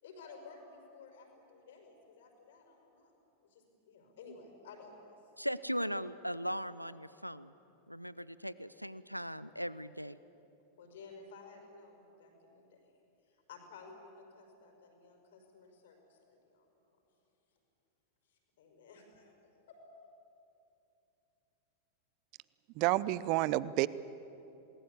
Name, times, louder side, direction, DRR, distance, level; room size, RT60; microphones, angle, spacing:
voice 1, 0.0-3.1 3.5-5.2 10.8-12.8 13.3-16.8 18.3-19.3 19.7-19.8, left 4 dB, 60° left, 3 dB, 5.5 m, -54 dB
voice 2, 5.4-7.5 7.9-10.2, equal, 90° right, 17 dB, 0.5 m, -38 dB
voice 3, 22.8-23.9, right 17 dB, 45° right, 19 dB, 0.6 m, -29 dB
28.0 x 20.0 x 8.5 m, 2.9 s
figure-of-eight pair, 90°, 0 cm